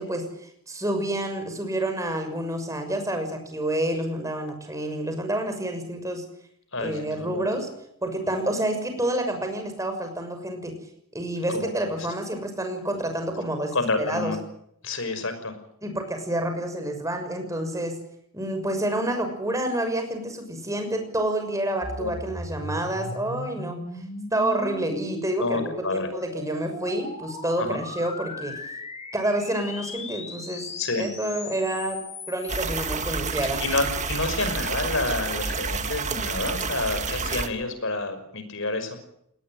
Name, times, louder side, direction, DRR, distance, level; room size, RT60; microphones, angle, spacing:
voice 1, 0.0-6.2 6.8-7.7 8.0-10.7 11.1-14.3 15.8-18.0 18.3-23.8 24.3-25.6 25.9-28.5 29.1-30.7 31.0-32.0 32.3-33.6, right 1 dB, 15° right, 6 dB, 6.3 m, -28 dB
voice 2, 6.7-7.5 11.5-12.0 13.7-14.4 14.8-15.5 22.0-22.1 25.4-26.1 27.6-27.8 30.8-31.0 33.6-39.0, left 3 dB, 65° left, 9 dB, 5.7 m, -29 dB
sound 1, 21.8-33.2, left 2 dB, 30° left, 7.3 m, -38 dB
sound 2, 32.5-37.5, right 4 dB, 35° right, 1.9 m, -29 dB
20.0 x 20.0 x 9.3 m, 0.72 s
head